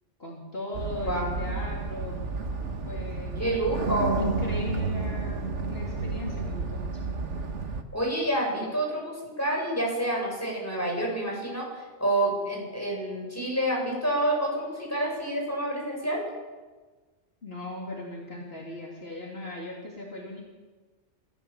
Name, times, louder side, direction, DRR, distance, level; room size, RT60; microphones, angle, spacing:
voice 1, 0.2-2.2 2.9-3.9 4.2-7.1 17.4-20.4, left 1 dB, 55° left, -3 dB, 3.6 m, -38 dB
sound 1, 0.7-7.8, right 4 dB, 80° right, 1.8 m, -31 dB
voice 2, 1.0-1.5 3.4-4.2 7.9-11.7 12.0-16.2, right 1 dB, 15° left, -2 dB, 7.7 m, -28 dB
28.5 x 14.5 x 7.4 m, 1.3 s
omnidirectional pair, 1.2 m